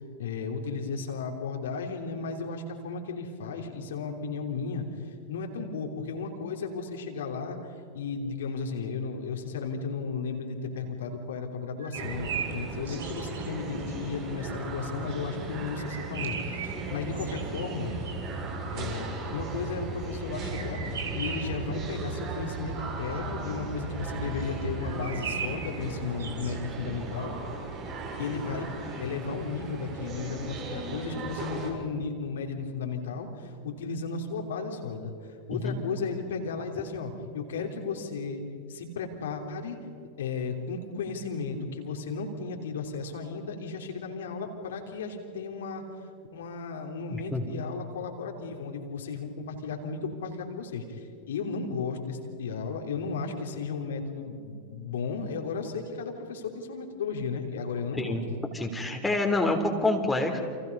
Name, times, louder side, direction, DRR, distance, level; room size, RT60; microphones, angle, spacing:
voice 1, 0.2-17.9 18.7-27.4 28.2-28.7 29.0-38.4 38.7-39.8 40.2-45.8 46.3-58.2, left 4 dB, 60° left, 2 dB, 3.3 m, -34 dB
sound 1, 11.8-13.5 15.8-18.4 20.5-21.7 24.8-26.6, right 7 dB, 60° right, 3.9 m, -38 dB
sound 2, 11.9-31.7, right 3 dB, 35° right, 6.7 m, -36 dB
voice 2, 47.1-47.4 58.0-58.2 58.5-60.4, left 2 dB, 5° left, 2 dB, 3.5 m, -27 dB
29.5 x 28.5 x 5.5 m, 2.3 s
figure-of-eight pair, 90°, 0 cm